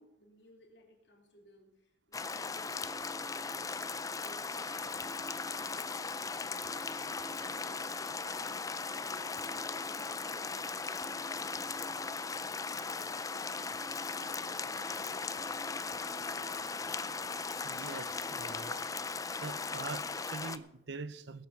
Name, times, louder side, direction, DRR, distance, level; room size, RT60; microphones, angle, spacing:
voice 1, 0.0-3.2 4.1-6.9 7.2-7.9 8.2-14.0 14.3-16.6, left 1 dB, 90° left, 3.0 m, -60 dB
sound 1, 2.1-20.6, left 4 dB, 20° left, 0.5 m, -38 dB
sound 2, 2.8-20.3, right 1 dB, 15° right, 0.9 m, -54 dB
voice 2, 17.6-18.8 19.4-21.5, right 4 dB, 80° right, 0.7 m, -43 dB
19.0 x 7.3 x 6.1 m
head